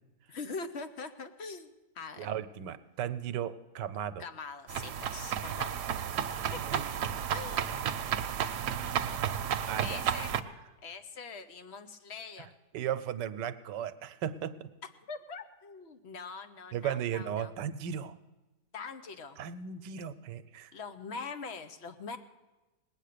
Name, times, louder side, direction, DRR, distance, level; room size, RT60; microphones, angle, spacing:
voice 1, 0.3-1.7 1.9-2.3 4.2-5.7 6.5-7.9 9.8-10.3 10.8-12.5 15.1-17.5 18.7-19.4 20.7-22.2, left 4 dB, 50° left, 9 dB, 0.9 m, -43 dB
voice 2, 2.2-4.2 9.7-10.0 12.7-14.7 16.7-18.1 19.4-20.7, right 9 dB, 90° right, 13 dB, 1.3 m, -36 dB
sound 1, 4.7-10.4, right 9 dB, 70° right, 1.2 m, -32 dB
19.5 x 9.0 x 6.7 m, 1.1 s
omnidirectional pair, 1.8 m